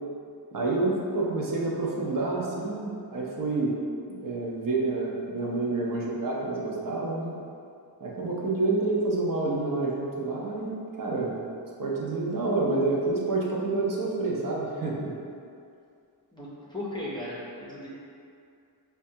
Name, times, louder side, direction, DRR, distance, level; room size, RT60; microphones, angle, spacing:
voice 1, 0.5-3.8 4.1-7.3 8.0-10.7 11.0-11.4 11.8-15.2, right 3 dB, 50° right, -4 dB, 0.6 m, -28 dB
voice 2, 16.3-17.9, left 1 dB, 10° left, -8 dB, 0.5 m, -36 dB
5.3 x 2.2 x 2.7 m, 2.4 s
wide cardioid pair, 155°, 41 cm